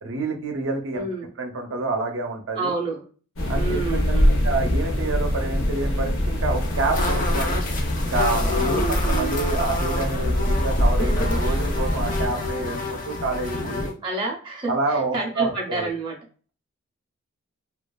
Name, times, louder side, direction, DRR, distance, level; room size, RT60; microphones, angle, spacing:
voice 1, 0.0-1.1 1.4-2.7 3.5-7.6 8.0-13.9 14.7-15.9, right 3 dB, 80° right, 4 dB, 0.5 m, -28 dB
voice 2, 0.9-1.3 2.6-3.0 3.6-4.4 8.5-9.5 14.0-14.8 15.1-16.2, right 2 dB, 25° right, -2 dB, 0.5 m, -28 dB
sound 1, 3.4-12.3, equal, 80° left, 0.6 m, -23 dB
sound 2, 6.5-13.9, left 2 dB, 40° left, 0.4 m, -30 dB
2.8 x 2.3 x 2.2 m, 0.39 s
head